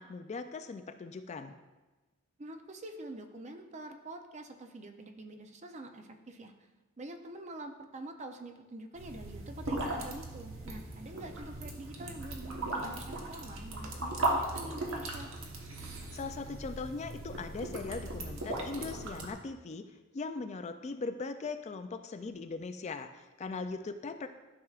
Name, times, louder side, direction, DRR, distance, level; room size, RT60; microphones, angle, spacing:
voice 1, 0.0-1.6 16.1-19.9 20.1-24.3, left 4 dB, 30° left, 9 dB, 0.3 m, -40 dB
voice 2, 2.4-6.5 7.0-15.3, right 1 dB, 35° right, 5 dB, 0.6 m, -45 dB
sound 1, 8.9-19.3, right 2 dB, 70° right, 1.2 m, -38 dB
12.5 x 6.1 x 2.4 m, 1.2 s
head